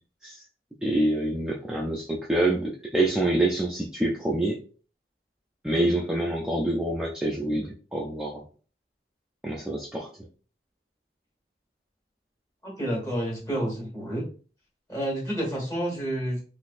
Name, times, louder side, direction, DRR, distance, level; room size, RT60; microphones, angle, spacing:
voice 1, 0.8-4.6 5.6-8.4 9.4-10.1, right 1 dB, 5° right, -4 dB, 0.4 m, -26 dB
voice 2, 12.6-14.2 14.9-16.4, right 1 dB, 20° left, -3 dB, 1.4 m, -29 dB
3.9 x 2.5 x 2.5 m, 0.40 s
head